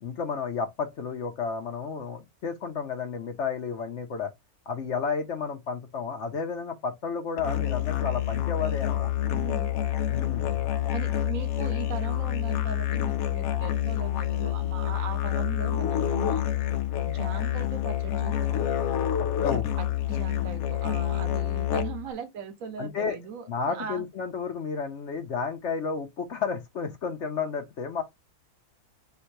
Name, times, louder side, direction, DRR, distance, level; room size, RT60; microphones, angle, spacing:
voice 1, 0.0-4.3 4.7-9.1 10.1-10.7 19.2-19.7 22.8-23.2 23.5-28.0, left 5 dB, 55° left, 1.0 m, -32 dB
Musical instrument, 7.4-22.1, left 11 dB, 75° left, 1.0 m, -28 dB
voice 2, 9.3-9.7 10.9-16.4 17.1-18.7 19.5-24.0, right 7 dB, 65° right, 1.3 m, -39 dB
3.5 x 2.8 x 4.5 m
omnidirectional pair, 1.6 m